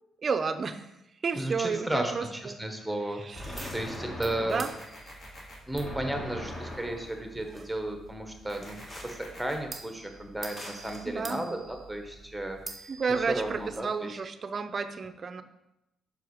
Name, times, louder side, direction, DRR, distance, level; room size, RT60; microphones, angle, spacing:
voice 1, 0.2-0.9 1.2-2.6 3.2-3.7 4.2-4.7 11.1-11.4 12.9-15.4, right 5 dB, 40° right, 10 dB, 0.5 m, -32 dB
voice 2, 1.3-4.7 5.7-12.9 13.3-14.1, right 1 dB, 5° right, 4 dB, 1.1 m, -34 dB
sound 1, 3.3-4.8 5.7-7.2 8.6-9.2 10.4-11.0, left 1 dB, 30° left, 1.6 m, -40 dB
sound 2, 3.3-13.8, right 3 dB, 25° right, 0.9 m, -48 dB
sound 3, 4.5-5.5 8.5-9.5, left 1 dB, 50° left, 2.2 m, -48 dB
5.6 x 4.6 x 4.7 m, 0.91 s
cardioid pair, 90°, 0 cm